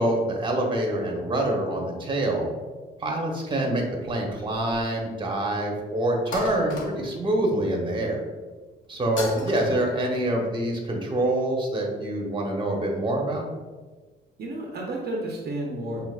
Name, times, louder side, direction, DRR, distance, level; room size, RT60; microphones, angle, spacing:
voice 1, 0.0-2.4 3.0-8.2 8.9-13.4, right 1 dB, 25° right, 0 dB, 0.9 m, -26 dB
sound 1, 4.1-5.0 5.3-5.4 6.3-7.3 9.2-9.7, left 3 dB, 75° left, 0.8 m, -36 dB
voice 2, 9.3-9.8 14.4-16.1, right 1 dB, 55° right, -1 dB, 0.7 m, -32 dB
5.7 x 2.9 x 2.4 m, 1.3 s
cardioid pair, 90°, 20 cm